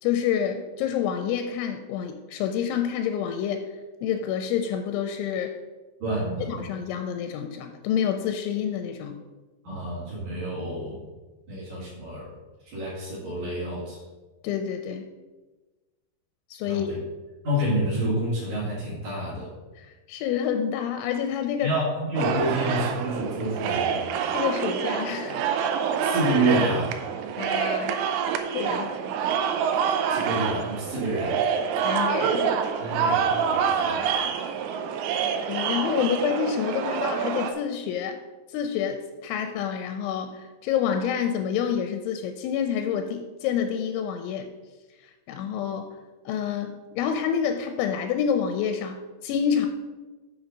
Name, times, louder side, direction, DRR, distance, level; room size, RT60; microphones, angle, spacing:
voice 1, 0.0-3.7 4.0-5.5 6.5-9.2 14.4-15.1 16.5-17.0 19.8-21.7 24.3-25.5 27.4-28.0 28.5-29.0 31.8-32.5 35.5-38.2 38.5-44.5 45.3-45.9 46.3-49.7, left 8 dB, 85° left, 6 dB, 2.9 m, -28 dB
voice 2, 6.0-6.6 9.6-11.0 11.5-12.3 12.6-14.0 16.6-17.0 17.4-19.5 21.6-24.1 26.0-27.0 30.1-31.4 32.8-34.0, right 1 dB, 45° right, -9 dB, 3.0 m, -28 dB
sound 1, 22.2-37.5, right 7 dB, 80° right, 2.6 m, -26 dB
7.1 x 6.2 x 5.3 m, 1.2 s
omnidirectional pair, 5.6 m